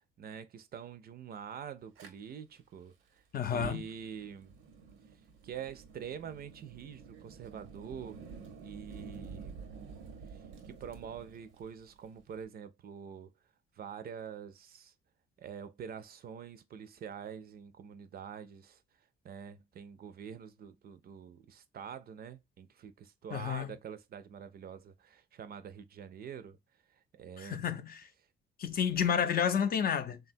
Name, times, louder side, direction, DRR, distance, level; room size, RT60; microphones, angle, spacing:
voice 1, 0.2-3.2 3.5-4.6 5.4-8.2 8.6-9.6 10.3-13.3 13.8-14.9 15.4-18.8 19.2-26.6 26.9-27.7, right 7 dB, 50° right, 0.4 m, -46 dB
Fire, 2.0-2.1 3.4-12.4, right 5 dB, 85° right, 0.7 m, -49 dB
voice 2, 3.3-3.9 23.3-23.8 27.4-28.0 28.6-30.2, left 8 dB, 50° left, 0.5 m, -30 dB
3.4 x 2.2 x 2.5 m
cardioid pair, 90°, 20 cm